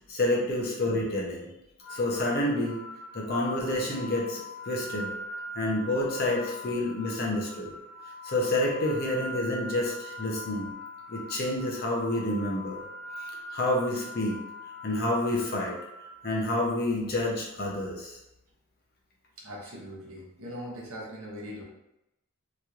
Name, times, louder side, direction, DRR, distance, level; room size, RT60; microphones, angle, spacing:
voice 1, 0.1-1.5 1.9-2.8 3.1-5.1 5.6-7.7 8.2-10.7 11.1-12.8 13.2-14.4 14.8-15.8 16.2-18.2, left 1 dB, 45° left, -3 dB, 0.6 m, -29 dB
sound 1, 1.8-16.9, left 1 dB, 85° left, 0.9 m, -42 dB
voice 2, 19.4-21.6, equal, 65° right, -3 dB, 0.9 m, -40 dB
3.0 x 2.9 x 2.4 m, 0.89 s
head